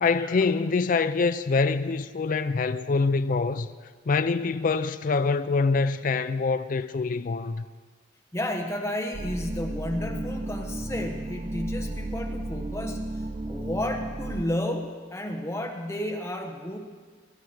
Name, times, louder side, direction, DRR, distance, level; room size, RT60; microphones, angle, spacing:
voice 1, 0.0-3.7 4.1-7.6, left 4 dB, 40° left, 0.4 m, -25 dB
voice 2, 8.3-16.8, left 1 dB, 15° left, 1.0 m, -32 dB
sound 1, 9.1-14.4, right 1 dB, 30° right, 0.4 m, -33 dB
19.5 x 11.5 x 4.8 m
head